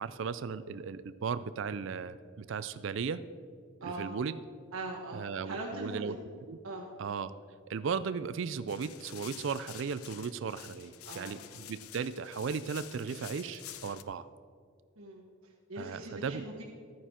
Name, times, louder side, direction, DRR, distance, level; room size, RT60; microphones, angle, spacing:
voice 1, 0.0-3.2 4.0-4.4 5.1-6.2 6.5-6.6 7.0-7.3 7.7-14.3 15.8-16.4, right 6 dB, 60° right, 14 dB, 0.4 m, -36 dB
voice 2, 3.8-4.1 4.7-6.1 6.6-6.9 11.0-11.4 14.9-16.6, right 2 dB, 85° right, -5 dB, 1.5 m, -41 dB
sound 1, 8.7-14.0, left 13 dB, 90° left, 0.5 m, -49 dB
13.0 x 9.2 x 4.4 m, 2.1 s
head